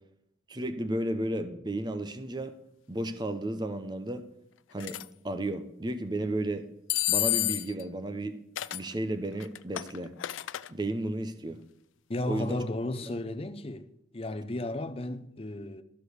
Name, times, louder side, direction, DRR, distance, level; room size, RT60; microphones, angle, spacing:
voice 1, 0.5-2.5 2.9-4.2 4.7-5.0 5.2-6.6 7.1-8.4 8.7-10.1 10.7-11.6 12.3-12.6, right 1 dB, 20° right, 0.6 m, -33 dB
sound 1, 4.8-5.0 6.9-7.8 8.6-8.9 9.4-10.7, left 16 dB, 85° left, 0.4 m, -30 dB
voice 2, 12.1-13.9 14.1-15.8, left 1 dB, 30° left, 0.6 m, -34 dB
13.0 x 5.1 x 6.4 m
head